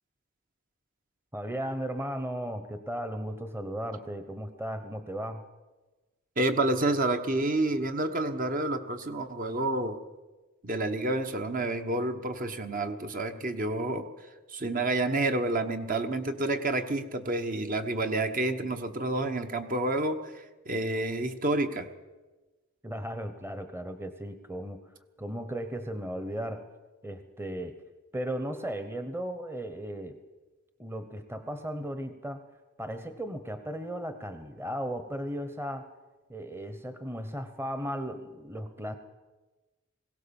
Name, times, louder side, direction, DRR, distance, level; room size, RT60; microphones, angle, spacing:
voice 1, 1.3-5.5 22.8-24.8 25.2-26.7 27.0-27.8 28.1-30.2 30.8-32.4 32.8-35.9 36.3-39.0, equal, 10° right, 9 dB, 1.1 m, -36 dB
voice 2, 6.4-10.0 10.6-14.1 14.5-21.9, right 2 dB, 40° right, 7 dB, 1.3 m, -29 dB
21.0 x 17.5 x 7.2 m, 1.2 s
head